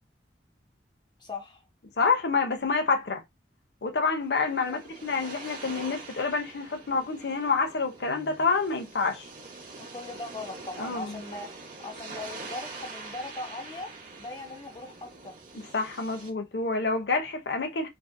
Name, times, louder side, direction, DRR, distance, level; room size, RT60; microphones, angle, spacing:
voice 1, 1.2-1.6 4.7-4.8 9.8-11.5 11.8-13.9 14.2-15.3, left 2 dB, 25° left, 0.4 m, -39 dB
voice 2, 2.0-3.2 3.8-9.3 10.8-11.2 15.5-17.9, left 4 dB, 65° left, 0.6 m, -28 dB
sound 1, 4.0-16.3, right 3 dB, 45° right, 0.8 m, -44 dB
2.9 x 2.6 x 2.5 m
head